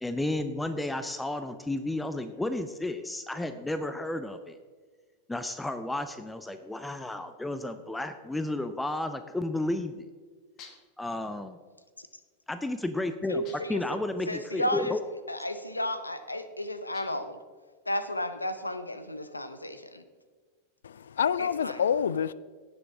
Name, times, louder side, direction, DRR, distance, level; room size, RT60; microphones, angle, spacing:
voice 1, 0.0-4.6 5.3-10.1 11.0-11.6 12.5-13.4 13.7-15.0, left 2 dB, 5° left, 10 dB, 0.6 m, -32 dB
sound 1, 10.6-11.0 13.4-13.9 16.9-17.4, left 6 dB, 35° left, 1.5 m, -51 dB
voice 2, 13.3-13.8 14.3-15.0 15.3-17.4 17.9-20.0 21.4-21.8, left 1 dB, 85° left, 12 dB, 0.8 m, -33 dB
voice 3, 20.8-22.3, left 8 dB, 65° left, 19 dB, 0.3 m, -27 dB
17.0 x 6.9 x 3.6 m, 1.5 s
figure-of-eight pair, 90°, 0 cm